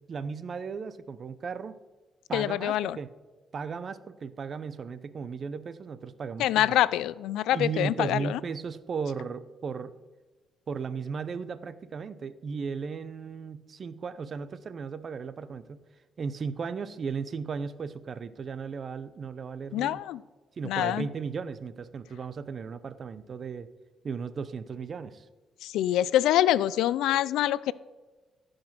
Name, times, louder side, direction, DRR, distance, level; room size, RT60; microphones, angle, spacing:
voice 1, 0.1-1.8 2.3-3.1 3.5-6.8 7.5-9.9 10.7-15.8 16.2-20.0 20.6-23.7 24.0-25.3, right 5 dB, 45° right, 14 dB, 0.7 m, -36 dB
voice 2, 2.3-3.0 6.4-8.4 19.7-20.2 20.6-21.1 25.6-27.7, left 13 dB, 90° left, 19 dB, 0.3 m, -25 dB
15.0 x 5.2 x 5.9 m, 1.2 s
cardioid pair, 90°, 0 cm